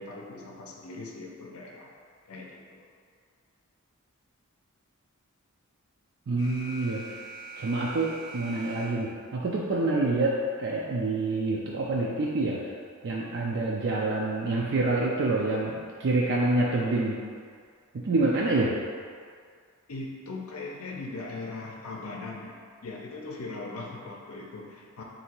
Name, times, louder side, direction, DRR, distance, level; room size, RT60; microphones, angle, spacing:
voice 1, 0.0-1.9 2.3-2.9 19.9-25.0, left 3 dB, 75° left, -1 dB, 0.6 m, -40 dB
voice 2, 6.3-7.0 7.6-12.6 13.0-17.2 17.9-18.8, right 2 dB, 55° right, -4 dB, 0.4 m, -27 dB
Alarm, 6.4-9.4, right 2 dB, 15° left, 0.5 m, -43 dB
3.8 x 2.7 x 4.3 m, 2.1 s
head